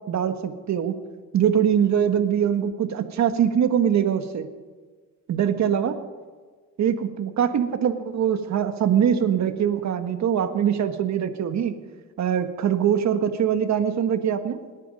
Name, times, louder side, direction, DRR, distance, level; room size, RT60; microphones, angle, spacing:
voice 1, 0.1-0.9 1.3-4.5 5.3-6.0 6.8-11.7 12.2-14.6, right 8 dB, 65° right, 8 dB, 1.6 m, -23 dB
26.0 x 10.0 x 5.3 m, 1.5 s
cardioid pair, 90°, 30 cm